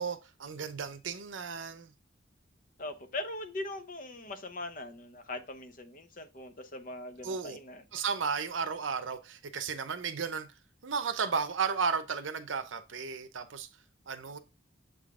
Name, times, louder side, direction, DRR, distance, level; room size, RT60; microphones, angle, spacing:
voice 1, 0.0-1.9 7.2-7.6 7.9-10.5 10.8-13.7 14.1-14.4, right 5 dB, 80° right, 0.7 m, -34 dB
voice 2, 2.8-7.8, left 2 dB, 45° left, 0.8 m, -41 dB
7.2 x 3.7 x 3.6 m
head